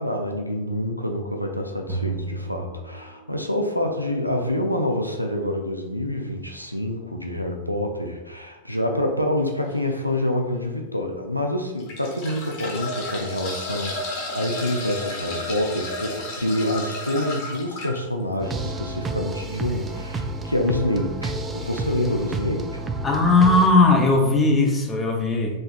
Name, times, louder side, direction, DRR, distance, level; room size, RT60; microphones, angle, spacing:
voice 1, 0.0-22.8, left 1 dB, 90° left, 2 dB, 0.4 m, -27 dB
sound 1, 1.9-3.7, right 4 dB, 50° right, 1.0 m, -32 dB
sound 2, 9.7-9.9 10.6-10.7 11.6-18.0 19.6-19.7 20.0-20.1, left 2 dB, 45° left, 1.2 m, -32 dB
sound 3, 18.4-23.7, right 2 dB, 20° right, 0.4 m, -30 dB
voice 2, 23.0-25.6, left 2 dB, 15° left, 1 dB, 0.8 m, -18 dB
5.1 x 3.6 x 2.4 m, 1.1 s
figure-of-eight pair, 90°, 0 cm